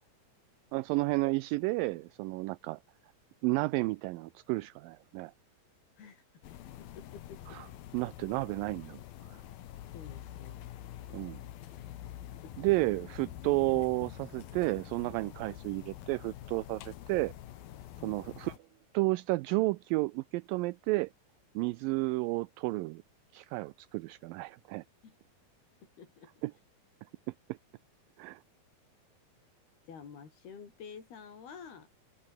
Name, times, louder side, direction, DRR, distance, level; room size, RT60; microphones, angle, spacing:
voice 1, 0.7-2.8 3.4-5.3 7.5-7.7 7.9-9.0 9.3-9.4 11.1-11.4 12.6-17.3 18.0-18.5 18.9-21.1 21.6-23.0 23.3-24.8 26.4-26.5 27.5-27.6 28.2-28.4, right 22 dB, 80° right, 2.1 m, -32 dB
sound 1, 6.4-18.6, left 12 dB, 75° left, 3.2 m, -46 dB
voice 2, 6.8-7.6 9.9-10.6 11.8-11.9 12.4-12.7 18.0-18.2 25.0-25.2 26.0-26.3 29.9-31.9, left 6 dB, 90° left, 6.3 m, -50 dB
omnidirectional pair, 4.3 m